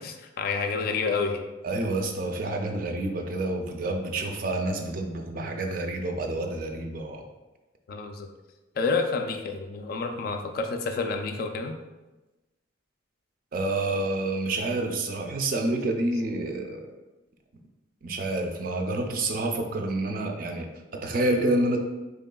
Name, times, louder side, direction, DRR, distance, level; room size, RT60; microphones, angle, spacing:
voice 1, 0.0-1.5 7.9-8.3 8.8-11.8 16.1-16.2, left 4 dB, 50° left, 5 dB, 0.3 m, -29 dB
voice 2, 1.6-7.3 13.5-16.8 18.0-21.8, right 2 dB, 45° right, 3 dB, 0.4 m, -28 dB
3.8 x 3.5 x 2.2 m, 1.1 s
head